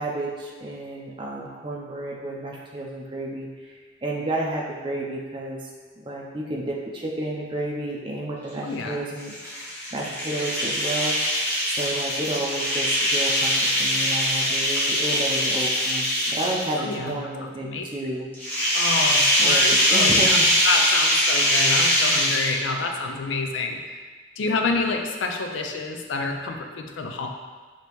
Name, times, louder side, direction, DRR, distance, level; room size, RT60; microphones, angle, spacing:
voice 1, 0.0-5.7 6.0-9.3 9.9-11.5 11.8-18.3 19.4-20.5, right 1 dB, 25° right, -3 dB, 0.5 m, -31 dB
voice 2, 8.6-9.0 16.8-17.8 18.7-20.4 20.6-23.8 24.4-27.3, left 3 dB, 85° left, 3 dB, 0.4 m, -28 dB
sound 1, 9.2-16.9 18.3-22.8, equal, 10° left, 0.9 m, -22 dB
5.1 x 2.8 x 3.0 m, 1.5 s
head